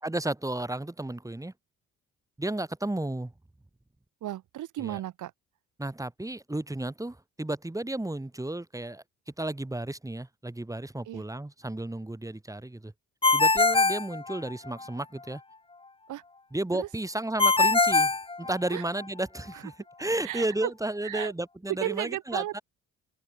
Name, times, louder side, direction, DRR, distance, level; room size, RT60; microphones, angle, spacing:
voice 1, 0.0-1.5 2.4-3.3 4.8-5.0 5.8-12.9 13.3-15.4 16.5-19.7 20.0-22.6, right 1 dB, 10° right, 5.3 m, -33 dB
voice 2, 4.2-5.3 11.1-11.2 16.1-16.2 16.7-16.9 18.7-18.8 20.2-20.7 21.0-21.3 21.7-22.6, right 13 dB, 80° right, 5.9 m, -34 dB
Ringtone, 13.2-14.9 17.4-19.0, left 3 dB, 20° left, 1.4 m, -23 dB
open air
cardioid pair, 90°, 30 cm